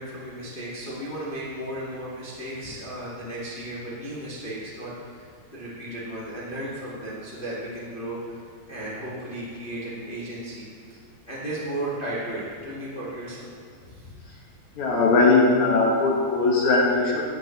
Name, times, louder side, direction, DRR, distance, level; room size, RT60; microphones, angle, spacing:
voice 1, 0.0-8.4 8.7-11.0 11.2-13.5 13.8-14.1, right 1 dB, 80° left, -8 dB, 0.4 m, -35 dB
voice 2, 14.8-17.2, left 3 dB, 65° left, -3 dB, 1.9 m, -20 dB
15.5 x 8.6 x 3.3 m, 2.2 s
omnidirectional pair, 5.1 m